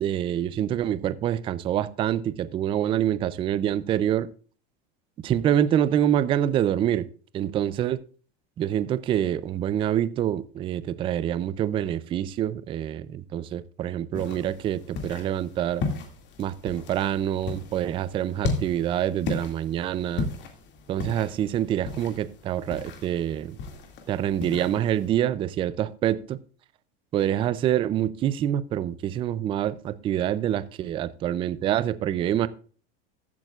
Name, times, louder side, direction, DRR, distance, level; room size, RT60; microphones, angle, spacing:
voice 1, 0.0-4.3 5.2-7.1 7.3-8.0 8.6-15.8 16.4-20.3 20.9-23.6 24.1-26.4 27.1-32.5, right 11 dB, 20° right, 0.3 m, -26 dB
sound 1, 14.1-25.1, left 4 dB, 35° left, 2.2 m, -36 dB
14.5 x 8.6 x 2.4 m
supercardioid pair, 160°, 30 cm